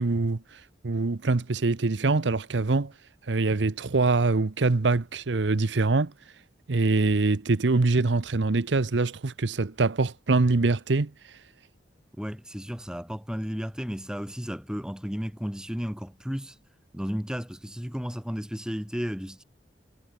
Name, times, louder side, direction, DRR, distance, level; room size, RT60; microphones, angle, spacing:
voice 1, 0.0-2.9 3.3-6.1 6.7-11.1, right 3 dB, 75° right, 0.8 m, -24 dB
voice 2, 12.2-16.6 16.9-19.4, equal, 5° right, 1.5 m, -33 dB
head